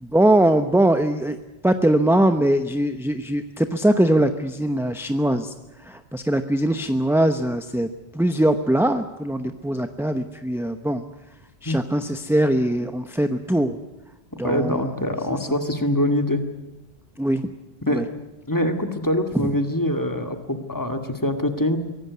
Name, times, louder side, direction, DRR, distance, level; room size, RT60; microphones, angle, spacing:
voice 1, 0.0-1.4 1.6-5.5 5.8-11.0 11.6-13.8 14.4-15.0 17.2-17.5 17.9-18.0 19.3-19.5, right 1 dB, 5° right, 8 dB, 0.8 m, -21 dB
voice 2, 11.7-12.1 14.4-16.4 17.8-18.0 18.5-21.8, left 1 dB, 20° left, 6 dB, 2.0 m, -24 dB
24.0 x 17.0 x 9.5 m, 1.0 s
omnidirectional pair, 1.1 m